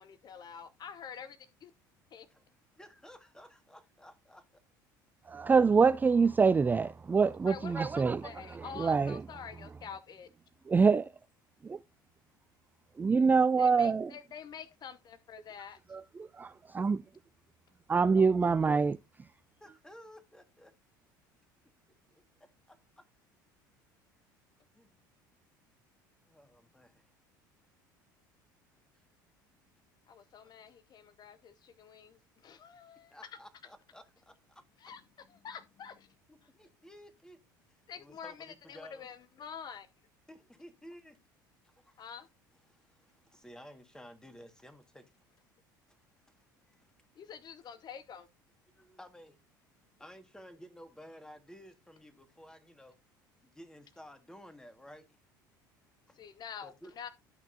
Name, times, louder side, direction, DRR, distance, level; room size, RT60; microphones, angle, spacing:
voice 1, 0.0-1.7 2.1-2.3 7.4-10.3 13.6-15.8 30.1-33.2 34.8-35.0 35.3-36.1 37.9-39.9 42.0-42.3 47.2-48.3 56.1-57.1, left 7 dB, 40° left, 0.7 m, -47 dB
voice 2, 2.7-4.5 19.6-20.7 22.1-23.0 24.7-25.0 26.2-27.1 28.7-28.8 33.1-34.6 36.3-37.4 37.7-39.1 40.3-41.2 41.6-42.0 42.7-45.1 45.9-46.4 46.7-46.9 48.7-49.4 49.7-53.0 53.4-55.2 56.1-56.2 56.6-56.9, equal, 5° left, 1.8 m, -54 dB
voice 3, 5.3-8.2 8.5-9.2 10.7-11.1 11.6-11.8 13.0-14.1 15.9-17.0 17.9-19.0, right 5 dB, 15° right, 0.3 m, -25 dB
12.0 x 5.9 x 2.7 m
hypercardioid pair, 65°, 11 cm